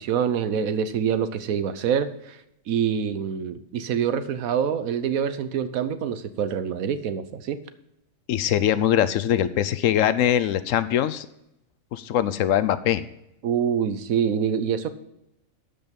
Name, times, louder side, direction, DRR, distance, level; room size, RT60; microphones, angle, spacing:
voice 1, 0.0-2.4 2.7-7.6 13.4-15.0, right 8 dB, 80° right, 12 dB, 1.2 m, -25 dB
voice 2, 8.3-11.3 11.9-13.0, left 10 dB, 70° left, 14 dB, 0.9 m, -22 dB
12.5 x 5.5 x 5.2 m, 0.83 s
omnidirectional pair, 1.5 m